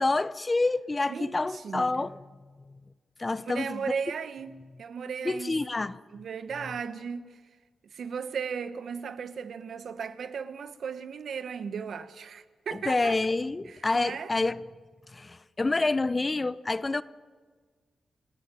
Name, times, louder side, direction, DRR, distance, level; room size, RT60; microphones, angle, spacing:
voice 1, 0.0-2.1 3.2-3.8 5.2-6.0 12.9-14.6 15.1-17.0, left 3 dB, 30° left, 0.8 m, -27 dB
voice 2, 1.1-2.1 3.5-4.5 4.8-5.6 6.1-7.4 7.8-13.2 13.7-14.3, right 6 dB, 75° right, 1.2 m, -36 dB
28.5 x 15.0 x 9.2 m
cardioid pair, 80°, 0 cm